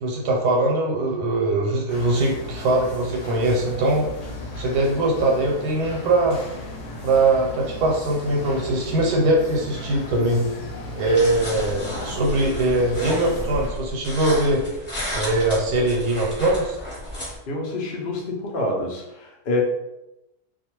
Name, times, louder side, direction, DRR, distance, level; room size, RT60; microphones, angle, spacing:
voice 1, 0.0-4.1 4.6-6.4 7.0-10.5 11.0-14.6 15.1-16.8, right 2 dB, 90° right, -1 dB, 1.2 m, -21 dB
sound 1, 1.9-13.7, left 2 dB, 60° left, 0.8 m, -35 dB
sound 2, 11.1-17.4, equal, 30° left, 0.6 m, -32 dB
voice 2, 17.5-19.6, left 2 dB, 80° left, -1 dB, 0.4 m, -27 dB
2.5 x 2.3 x 2.9 m, 0.91 s
omnidirectional pair, 1.7 m